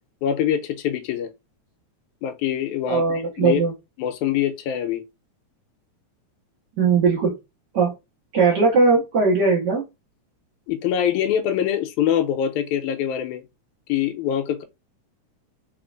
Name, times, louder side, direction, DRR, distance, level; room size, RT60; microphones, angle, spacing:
voice 1, 0.2-1.3 2.2-3.6 4.0-5.0 10.7-13.4 13.9-14.6, left 10 dB, 90° left, 2.0 m, -24 dB
voice 2, 2.9-3.7 6.8-7.3 7.7-7.9 8.3-9.8, right 4 dB, 60° right, 1.1 m, -19 dB
4.4 x 3.7 x 2.4 m
omnidirectional pair, 3.4 m